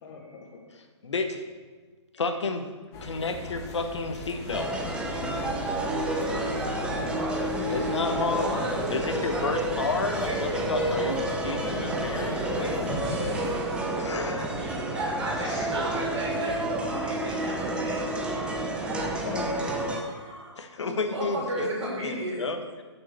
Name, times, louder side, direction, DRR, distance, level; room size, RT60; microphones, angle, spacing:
voice 1, 0.0-0.7 15.3-16.1 16.4-16.6 19.0-21.3, left 3 dB, 40° left, -1 dB, 2.6 m, -41 dB
voice 2, 1.0-1.4 2.2-2.7 3.0-4.8 7.7-8.5 8.9-12.8 14.0-14.5 20.6-22.8, left 3 dB, 70° left, 7 dB, 1.3 m, -31 dB
sound 1, 2.9-13.6, left 3 dB, 20° left, 1.4 m, -39 dB
sound 2, 4.5-20.0, right 1 dB, 5° right, 0.9 m, -30 dB
voice 3, 7.1-7.7 8.4-9.7 10.1-10.7 12.3-13.9 14.5-18.0 18.8-19.1 19.8-20.5 20.9-22.5, right 1 dB, 75° right, -4 dB, 3.6 m, -34 dB
8.5 x 6.6 x 6.8 m, 1.3 s
hypercardioid pair, 140°, 15 cm